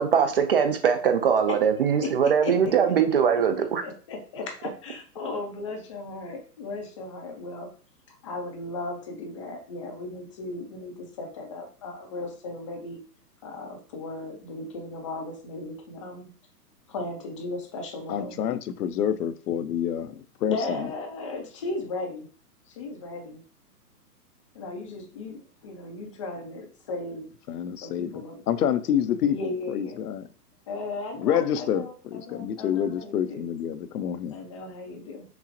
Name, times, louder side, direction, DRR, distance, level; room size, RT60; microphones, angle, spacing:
voice 1, 0.0-3.8, right 7 dB, 40° right, 8 dB, 0.4 m, -22 dB
voice 2, 2.4-3.2 3.6-7.7 8.2-13.0 13.4-16.3 16.9-18.4 20.5-22.3 22.7-23.4 24.5-27.3 27.8-28.8 29.3-30.0 30.7-33.4 34.3-35.2, left 3 dB, 20° left, 2 dB, 0.4 m, -36 dB
voice 3, 18.1-20.9 27.5-30.3 31.2-34.3, left 9 dB, 70° left, 13 dB, 0.5 m, -28 dB
5.9 x 2.0 x 2.6 m, 0.40 s
figure-of-eight pair, 125°, 48 cm